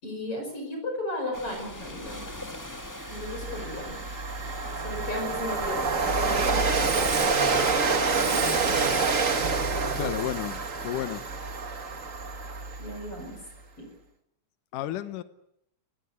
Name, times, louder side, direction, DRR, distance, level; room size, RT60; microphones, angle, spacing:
voice 1, 0.0-2.2 3.1-4.0 4.8-7.1 8.0-9.0 12.8-13.4 13.8-13.9, left 1 dB, 45° left, 6.5 m, -36 dB
sound 1, 1.3-8.0, left 1 dB, 10° left, 1.0 m, -42 dB
Train, 2.3-2.4 2.8-13.2, right 4 dB, 35° right, 1.5 m, -27 dB
voice 2, 10.0-11.2 14.7-15.2, left 12 dB, 85° left, 2.7 m, -32 dB
26.5 x 20.0 x 8.2 m
omnidirectional pair, 3.6 m